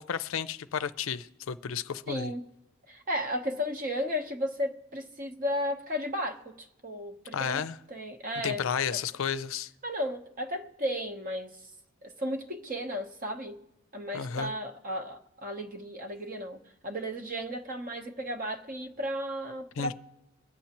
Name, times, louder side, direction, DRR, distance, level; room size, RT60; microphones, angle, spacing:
voice 1, 0.0-2.3 7.3-7.8 8.4-9.7 14.1-14.5 19.8-19.9, left 7 dB, 65° left, 0.5 m, -32 dB
voice 2, 2.1-2.5 2.9-8.6 9.8-11.6 12.0-13.6 13.9-16.6 16.8-19.9, equal, 40° right, 1.0 m, -34 dB
23.5 x 9.1 x 3.0 m
head